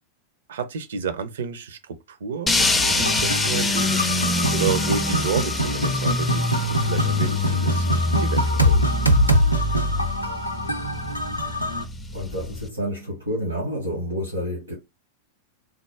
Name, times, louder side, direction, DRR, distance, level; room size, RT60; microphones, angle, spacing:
voice 1, 0.5-2.5 3.0-4.1 4.5-8.8, right 6 dB, 60° right, 0.5 m, -30 dB
sound 1, 2.5-12.7, left 2 dB, 10° left, 0.4 m, -25 dB
sound 2, 2.6-11.8, equal, 85° left, 0.4 m, -24 dB
voice 2, 12.1-14.7, equal, 85° right, 1.0 m, -29 dB
3.4 x 2.0 x 3.3 m
figure-of-eight pair, 90°, 0 cm